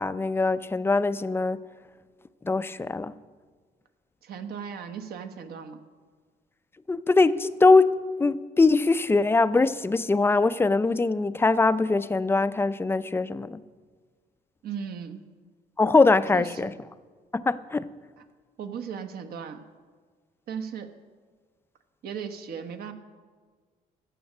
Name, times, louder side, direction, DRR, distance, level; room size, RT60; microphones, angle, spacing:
voice 1, 0.0-1.6 2.4-3.1 6.9-7.9 8.2-13.6 15.8-16.7 17.3-17.9, left 3 dB, 15° left, 13 dB, 0.4 m, -22 dB
voice 2, 4.2-5.8 14.6-15.2 16.3-16.7 18.6-19.6 20.5-20.9 22.0-22.9, right 7 dB, 65° right, 7 dB, 1.2 m, -36 dB
14.0 x 6.3 x 8.6 m, 1.5 s
cardioid pair, 110°, 17 cm